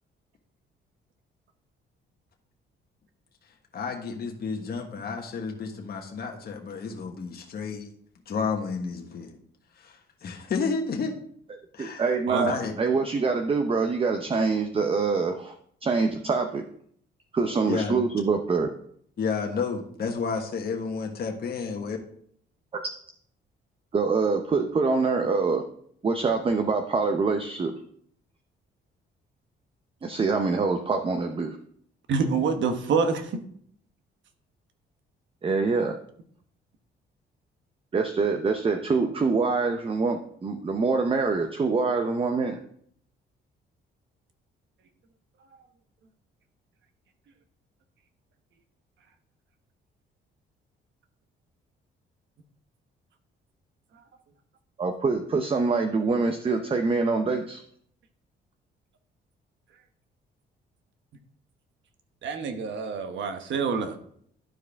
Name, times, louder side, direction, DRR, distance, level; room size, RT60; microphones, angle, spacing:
voice 1, 3.7-7.9 8.3-9.3 9.8-11.2 11.7-12.0 12.4-12.7 17.7-18.0 19.2-22.0, left 5 dB, 50° left, 2 dB, 1.3 m, -31 dB
voice 2, 11.8-15.5 15.8-16.6 17.3-18.7 22.7-22.8 23.9-25.7 26.0-27.8 30.0-31.6 35.4-36.0 37.9-42.6 54.8-57.6, right 4 dB, 30° right, 6 dB, 0.7 m, -25 dB
voice 3, 32.1-33.4 62.2-64.0, right 5 dB, 70° right, 7 dB, 1.1 m, -26 dB
11.5 x 4.8 x 3.5 m, 0.64 s
cardioid pair, 90°, 20 cm